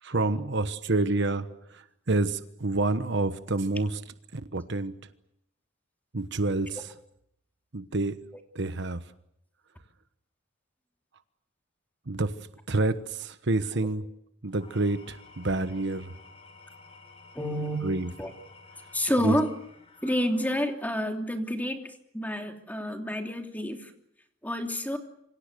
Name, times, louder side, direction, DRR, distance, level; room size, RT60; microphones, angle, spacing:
voice 1, 0.0-4.0 4.3-5.0 6.1-6.9 7.7-8.2 8.5-9.0 12.1-12.4 12.7-14.0 14.4-16.1 17.8-18.1 19.2-19.4, right 2 dB, 60° right, 10 dB, 1.2 m, -28 dB
Engine / Tools, 14.5-20.9, left 3 dB, 30° left, 4.6 m, -52 dB
voice 2, 17.3-17.8 18.2-18.3 18.9-19.5 20.0-23.9 24.4-25.0, equal, 10° left, 3 dB, 3.0 m, -29 dB
27.5 x 25.0 x 6.8 m, 0.76 s
head